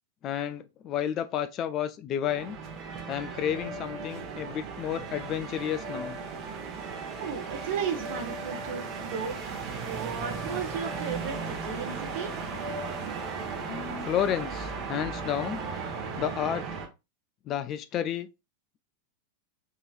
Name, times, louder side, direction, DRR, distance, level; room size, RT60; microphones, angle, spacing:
voice 1, 0.2-2.6 3.1-6.2 11.7-12.0 13.6-15.6 16.2-16.7 17.5-18.3, left 10 dB, 35° left, 0.4 m, -31 dB
sound 1, 2.3-16.9, right 4 dB, 35° right, 1.0 m, -36 dB
voice 2, 7.2-9.4 9.8-12.4, right 6 dB, 50° right, 1.3 m, -35 dB
4.5 x 3.1 x 2.5 m
figure-of-eight pair, 90°, 0 cm